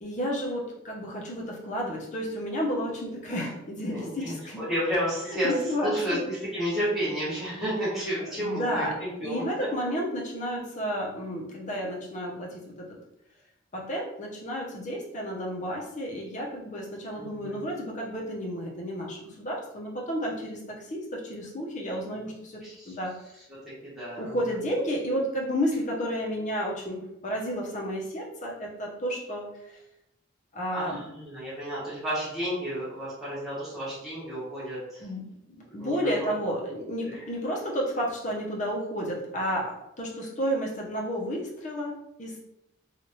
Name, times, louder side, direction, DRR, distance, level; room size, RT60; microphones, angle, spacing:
voice 1, 0.0-4.6 5.3-6.2 8.4-8.9 9.2-12.9 13.7-22.6 22.9-23.1 24.2-29.5 30.5-31.0 35.0-35.3 35.7-42.5, equal, 35° left, -2 dB, 0.7 m, -31 dB
voice 2, 3.9-5.5 5.8-9.4 17.1-17.6 22.6-22.9 23.6-24.4 30.7-35.1 35.8-36.3 36.7-36.8 37.1-37.3, equal, ahead, -12 dB, 1.4 m, -32 dB
3.1 x 2.4 x 2.7 m, 0.84 s
head